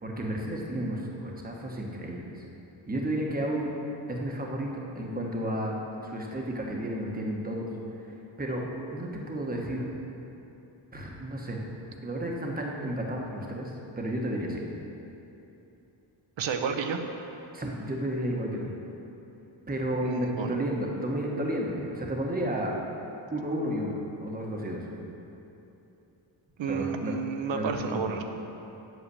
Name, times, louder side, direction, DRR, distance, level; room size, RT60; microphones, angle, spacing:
voice 1, 0.0-2.4 2.9-3.7 4.1-7.7 8.0-8.6 8.9-10.0 10.9-11.6 12.0-14.6 17.5-18.7 19.7-22.7 23.3-24.8 26.7-27.1 27.5-28.1, right 1 dB, 20° right, -1 dB, 1.2 m, -32 dB
voice 2, 16.4-17.1 20.0-20.6 26.6-28.2, right 6 dB, 70° right, 5 dB, 1.0 m, -31 dB
8.3 x 6.8 x 8.5 m, 3.0 s
wide cardioid pair, 170°, 47 cm